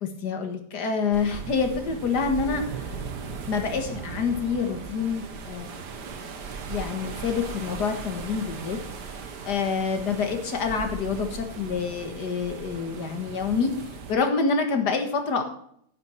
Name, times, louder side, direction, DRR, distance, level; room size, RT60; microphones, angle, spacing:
voice 1, 0.0-2.9 3.5-5.7 6.7-8.8 9.4-13.7 14.1-15.4, left 5 dB, 75° left, 5 dB, 2.2 m, -27 dB
sound 1, 1.1-14.2, right 5 dB, 85° right, 1.9 m, -38 dB
10.5 x 9.5 x 4.5 m, 0.68 s
omnidirectional pair, 1.8 m